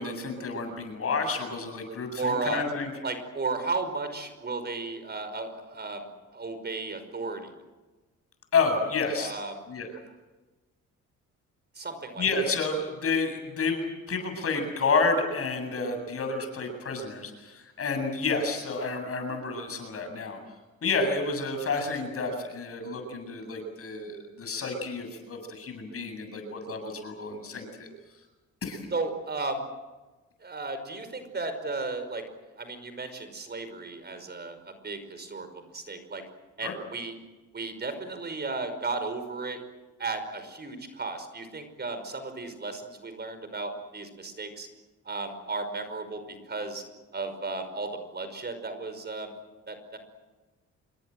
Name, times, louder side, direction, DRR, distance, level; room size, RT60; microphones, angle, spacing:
voice 1, 0.0-2.9 8.5-9.3 9.7-9.9 12.2-20.4 20.8-27.9 28.6-28.8 36.6-36.8, left 4 dB, 50° left, 6 dB, 7.8 m, -30 dB
voice 2, 2.2-2.6 3.0-6.1 6.3-7.5 9.2-9.6 11.8-12.2 28.9-29.7 30.4-35.5 35.7-36.2 36.6-37.2 37.5-39.6 40.0-44.7 45.1-46.8 47.1-49.3 49.7-50.0, right 3 dB, 35° right, 9 dB, 5.4 m, -34 dB
27.5 x 22.5 x 7.9 m, 1.2 s
cardioid pair, 90°, 30 cm